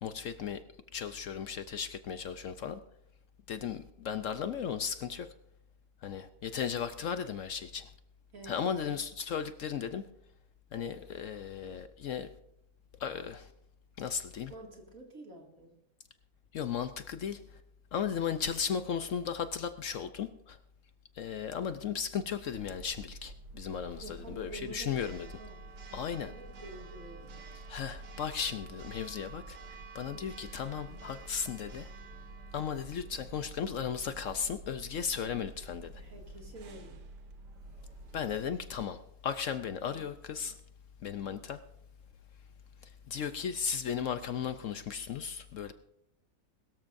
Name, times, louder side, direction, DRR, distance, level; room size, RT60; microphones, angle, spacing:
voice 1, 0.0-0.6 0.9-2.8 3.5-5.3 6.0-7.9 8.4-10.0 10.7-12.3 13.0-13.5 14.0-14.5 16.5-17.4 17.9-20.6 21.2-25.3 25.9-26.3 27.7-29.6 29.9-31.9 32.5-36.0 38.1-40.6 41.0-41.6 43.1-45.7, left 7 dB, 65° left, 11 dB, 0.8 m, -36 dB
voice 2, 8.3-9.0 14.5-15.7 24.0-27.6 30.1-30.3 36.0-37.0 39.8-40.0, right 2 dB, 55° right, 1 dB, 2.7 m, -49 dB
Church bell, 22.5-38.8, right 2 dB, 85° right, 1.7 m, -48 dB
22.0 x 13.0 x 2.6 m, 0.76 s
omnidirectional pair, 1.8 m